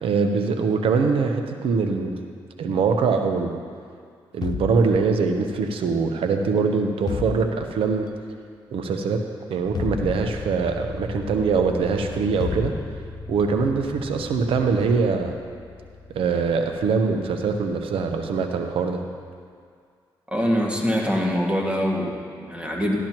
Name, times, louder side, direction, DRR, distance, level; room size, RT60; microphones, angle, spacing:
voice 1, 0.0-2.2 2.6-3.6 4.3-8.1 8.7-9.2 9.5-12.7 13.3-15.3 16.1-19.0, right 5 dB, 80° right, 5 dB, 0.8 m, -23 dB
sound 1, 4.4-5.5 7.1-8.0 9.7-10.8 12.4-13.4, left 6 dB, 50° left, 0.4 m, -32 dB
sound 2, 9.6-18.6, left 3 dB, 30° left, 1.7 m, -39 dB
voice 2, 20.3-23.0, equal, 10° right, -2 dB, 2.0 m, -24 dB
12.0 x 12.0 x 3.0 m, 2.1 s
cardioid pair, 60°, 9 cm